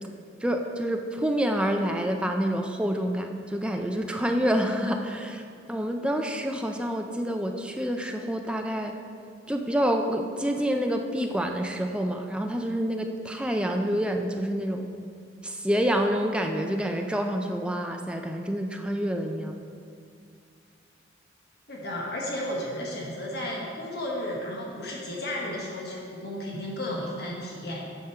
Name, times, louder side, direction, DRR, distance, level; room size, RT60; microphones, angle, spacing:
voice 1, 0.4-5.4 5.7-9.0 9.5-15.0 15.4-19.5, equal, 5° right, 3 dB, 0.4 m, -27 dB
voice 2, 21.7-27.8, left 1 dB, 55° left, -3 dB, 1.3 m, -33 dB
8.5 x 5.2 x 5.7 m, 2.3 s
head